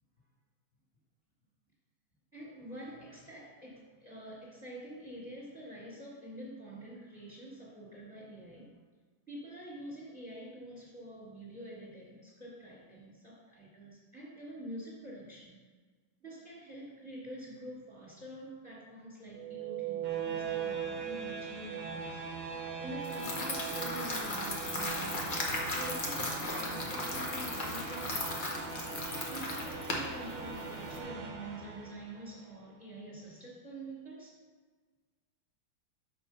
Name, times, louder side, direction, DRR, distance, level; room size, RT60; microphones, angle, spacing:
voice 1, 2.3-8.7 9.3-15.6 16.2-22.4 22.8-25.4 25.8-28.7 29.3-34.3, right 1 dB, 5° right, -8 dB, 2.1 m, -46 dB
sound 1, 19.3-32.3, right 6 dB, 80° right, 1.6 m, -40 dB
sound 2, 23.0-31.0, left 2 dB, 35° left, 0.9 m, -37 dB
5.5 x 5.3 x 5.9 m, 1.4 s
omnidirectional pair, 2.1 m